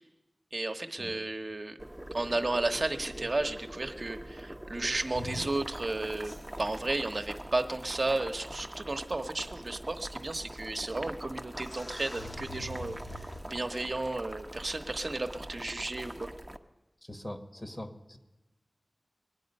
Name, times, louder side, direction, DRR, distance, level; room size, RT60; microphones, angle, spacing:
voice 1, 0.5-1.8 2.1-16.3, right 2 dB, 60° right, 5 dB, 0.9 m, -33 dB
Boiling, 1.8-16.6, right 1 dB, 15° right, 0.7 m, -43 dB
sound 1, 5.1-5.5 6.2-6.6 7.9-8.0 8.5-8.6 9.7-9.8 11.0-11.1 11.5-13.9 16.0-16.2, left 1 dB, 80° left, 2.9 m, -43 dB
voice 2, 17.1-18.2, left 1 dB, 30° left, 8 dB, 1.2 m, -42 dB
22.0 x 8.6 x 5.3 m, 1.0 s
wide cardioid pair, 50°, 0 cm